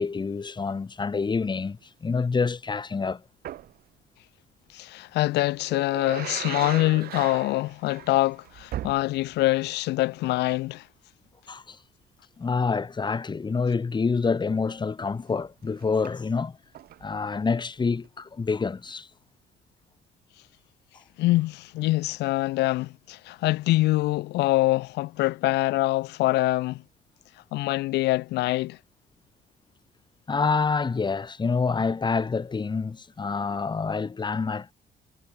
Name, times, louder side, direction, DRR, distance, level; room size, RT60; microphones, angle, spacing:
voice 1, 0.0-3.2 11.5-11.8 12.4-16.6 17.0-19.1 30.3-34.7, left 4 dB, 25° left, 6.3 m, -27 dB
sound 1, 3.4-3.8 5.3-9.5 9.8-9.9 15.7-16.1 16.7-17.2 18.0-18.1, right 13 dB, 65° right, 2.1 m, -38 dB
voice 2, 4.7-10.9 21.2-26.8 27.5-28.8, left 18 dB, 85° left, 4.0 m, -24 dB
cardioid pair, 110°, 17 cm